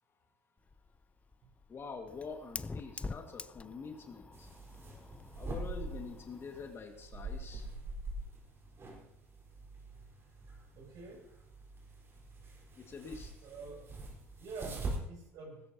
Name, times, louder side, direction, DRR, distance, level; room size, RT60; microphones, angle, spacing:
Fire, 0.6-6.8, left 3 dB, 15° left, 0.6 m, -47 dB
voice 1, 1.7-4.5 5.4-7.7 12.8-13.3, left 5 dB, 35° left, 4 dB, 1.9 m, -46 dB
sound 1, 4.3-15.0, right 2 dB, 35° right, 4.3 m, -44 dB
voice 2, 10.7-11.2 12.2-12.3 13.4-13.9 14.4-15.6, right 4 dB, 55° right, 0 dB, 6.9 m, -47 dB
18.5 x 16.0 x 2.9 m, 0.79 s
hypercardioid pair, 70°, 7 cm